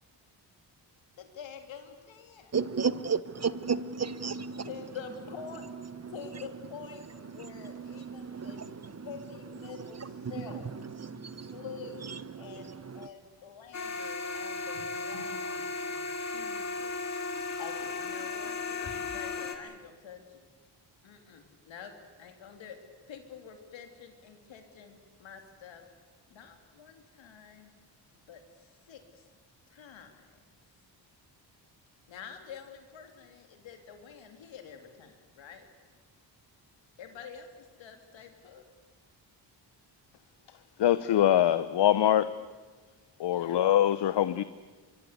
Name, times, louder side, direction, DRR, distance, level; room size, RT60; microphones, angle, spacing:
voice 1, 1.2-2.5 4.6-5.6 6.1-7.0 7.3-10.6 11.4-20.4 21.0-21.9 22.2-22.8 23.1-25.8 26.3-27.7 28.3-29.3 29.7-30.3 32.1-35.7 37.0-38.6 43.3-43.6, left 6 dB, 90° left, 3.4 m, -47 dB
voice 2, 2.5-4.7 5.8-6.1 7.3-9.1 9.6-11.6 12.0-13.1, right 5 dB, 35° right, 1.1 m, -35 dB
sound 1, 13.7-19.6, left 4 dB, 40° left, 3.2 m, -35 dB
voice 3, 40.8-42.3 43.2-44.4, left 11 dB, 65° left, 0.8 m, -23 dB
24.0 x 23.5 x 8.3 m
cardioid pair, 75°, 44 cm